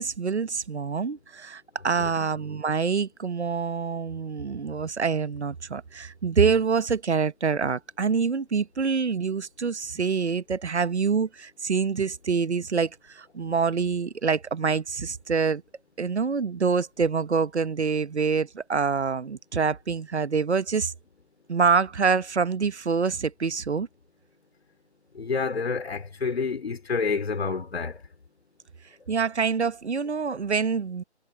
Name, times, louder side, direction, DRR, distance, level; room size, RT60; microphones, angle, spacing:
voice 1, 0.0-15.6 16.0-20.9 21.5-23.9 29.1-31.0, right 5 dB, 75° right, 1.0 m, -26 dB
voice 2, 25.1-28.0, left 4 dB, 65° left, 3.0 m, -28 dB
figure-of-eight pair, 160°, 34 cm